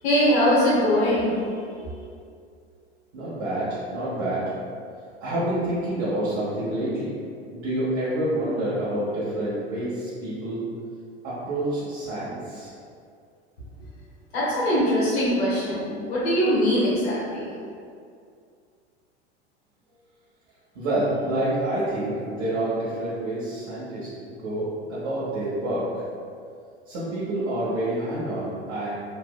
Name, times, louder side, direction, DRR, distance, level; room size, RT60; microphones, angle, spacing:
voice 1, 0.0-2.1 14.3-17.5, equal, 70° left, -8 dB, 1.0 m, -22 dB
voice 2, 3.1-4.8 5.2-7.1 7.5-10.6 11.2-12.7 20.7-26.0 26.9-28.9, right 1 dB, 55° right, -10 dB, 1.0 m, -28 dB
3.0 x 2.6 x 2.2 m, 2.3 s
hypercardioid pair, 85°, 32 cm